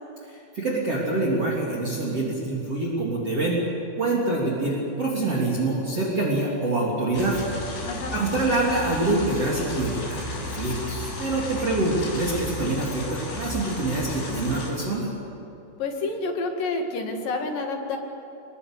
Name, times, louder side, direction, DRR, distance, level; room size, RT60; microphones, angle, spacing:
voice 1, 0.6-3.6 4.0-7.4 8.1-15.1, right 2 dB, 35° right, -4 dB, 3.8 m, -25 dB
sound 1, 7.1-14.7, left 2 dB, 80° left, 8.8 m, -34 dB
voice 2, 7.8-8.1 11.6-11.8 15.8-18.0, left 3 dB, 55° left, 2 dB, 3.3 m, -29 dB
26.0 x 21.5 x 8.4 m, 2.9 s
omnidirectional pair, 5.4 m